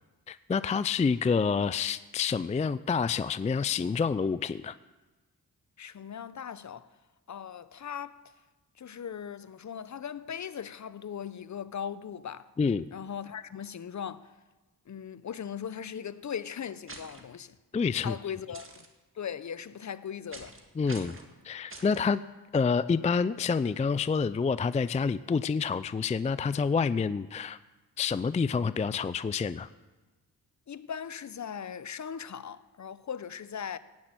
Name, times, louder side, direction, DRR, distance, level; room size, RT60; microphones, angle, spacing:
voice 1, 0.3-4.8 12.6-12.9 17.7-18.2 20.8-21.2 21.4-22.2 22.5-27.6 28.0-29.7, left 5 dB, 20° left, 0.4 m, -28 dB
voice 2, 5.8-6.9 7.3-8.2 8.8-12.5 12.9-14.3 14.9-17.5 18.0-18.8 19.2-20.5 30.7-33.8, left 8 dB, 45° left, 0.7 m, -39 dB
sound 1, 16.9-17.2 18.5-18.9 20.3-20.6 20.9-21.3 21.7-22.0, right 2 dB, 30° right, 2.2 m, -45 dB
16.5 x 5.9 x 8.9 m
cardioid pair, 60°, 39 cm